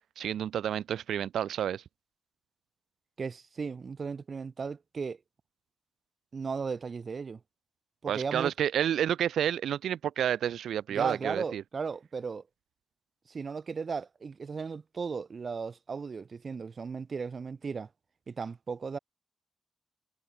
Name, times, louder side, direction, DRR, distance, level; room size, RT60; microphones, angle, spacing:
voice 1, 0.2-1.8 8.1-11.6, right 10 dB, 85° right, 0.6 m, -30 dB
voice 2, 3.2-5.2 6.3-7.4 8.0-8.5 10.9-12.4 13.3-17.9 18.3-19.0, right 5 dB, 55° right, 4.6 m, -36 dB
cardioid pair, 60°, 0 cm